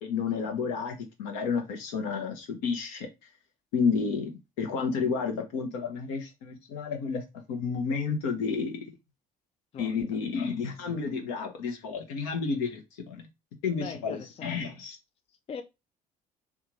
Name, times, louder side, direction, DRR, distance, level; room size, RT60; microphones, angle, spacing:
voice 1, 0.0-3.1 3.7-4.3 4.6-7.2 7.5-8.9 9.8-13.3 13.6-15.0, left 5 dB, 70° left, 0.9 m, -31 dB
voice 2, 9.7-10.2 13.7-14.8 15.3-15.6, left 6 dB, 30° left, 0.5 m, -42 dB
3.6 x 2.4 x 3.0 m
figure-of-eight pair, 55°, 19 cm